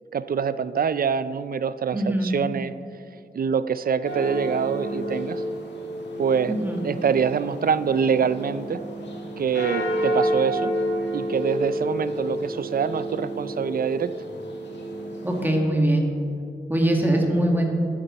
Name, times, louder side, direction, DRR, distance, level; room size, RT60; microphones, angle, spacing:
voice 1, 0.1-2.7 3.3-5.4 6.2-8.8 9.4-10.7 11.1-14.1, right 6 dB, 55° right, 14 dB, 0.4 m, -25 dB
voice 2, 1.9-2.3 6.5-6.8 15.2-16.1 16.7-17.7, right 1 dB, 10° right, 0 dB, 1.7 m, -22 dB
sound 1, 4.0-15.6, right 1 dB, 80° left, 1.8 m, -30 dB
13.5 x 9.5 x 4.2 m, 2.5 s
wide cardioid pair, 105°, 18 cm